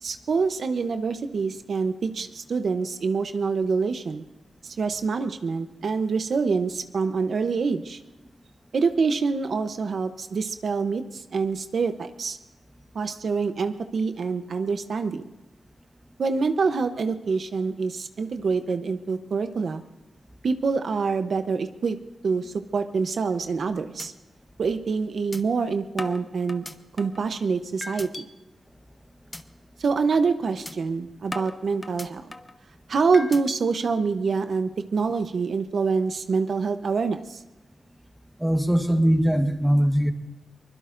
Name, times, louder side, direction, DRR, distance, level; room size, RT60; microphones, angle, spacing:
voice 1, 0.0-4.2 4.6-8.0 8.7-12.4 12.9-15.3 16.2-19.8 20.4-22.0 22.2-24.1 24.6-26.6 27.0-28.3 29.8-32.3 32.9-37.4, right 4 dB, 65° right, 8 dB, 0.8 m, -26 dB
sound 1, 23.3-23.6 24.0-24.1 24.5-24.6 25.3-25.4 26.0-27.3 27.8-28.2 28.7-28.9 29.3-29.4 29.8-30.0 30.7-30.8 31.3-32.6 33.1-33.6, left 2 dB, 20° left, 0.8 m, -37 dB
voice 2, 38.4-40.1, equal, 5° right, 6 dB, 1.2 m, -21 dB
23.5 x 21.0 x 2.6 m, 1.0 s
cardioid pair, 90°, 0 cm